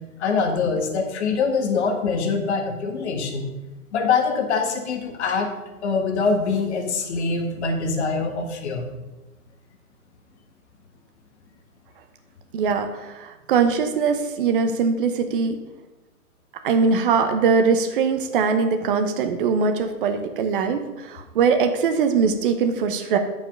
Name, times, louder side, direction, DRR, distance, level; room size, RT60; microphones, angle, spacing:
voice 1, 0.2-3.5 3.9-5.5 5.8-8.9, left 4 dB, 50° left, 4 dB, 1.7 m, -24 dB
voice 2, 12.5-12.9 13.2-15.6 16.6-23.2, right 5 dB, 35° right, 7 dB, 0.8 m, -21 dB
8.8 x 5.7 x 5.3 m, 1.0 s
hypercardioid pair, 140°, 44 cm